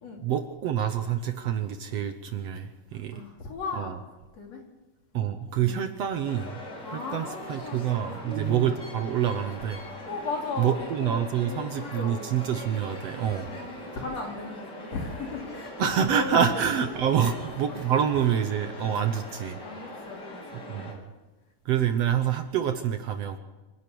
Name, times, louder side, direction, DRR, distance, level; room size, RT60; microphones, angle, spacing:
voice 1, 0.2-3.2 3.8-4.0 5.1-6.6 6.9-9.8 10.6-13.5 15.8-19.6 20.7-20.9 21.7-23.4, right 9 dB, 65° right, 8 dB, 1.9 m, -27 dB
voice 2, 2.9-4.0 4.3-4.6 5.1-5.2 5.6-5.9 6.8-8.3 10.1-12.5 13.4-16.9 17.2-17.4 18.8-19.1 19.6-20.9 21.7-22.0, left 3 dB, 55° left, 1 dB, 4.3 m, -37 dB
sound 1, 6.3-20.9, left 1 dB, 35° left, 4.1 m, -42 dB
sound 2, 8.2-9.3, right 3 dB, 90° left, 9.7 m, -37 dB
26.0 x 11.5 x 8.6 m, 1.2 s
omnidirectional pair, 3.5 m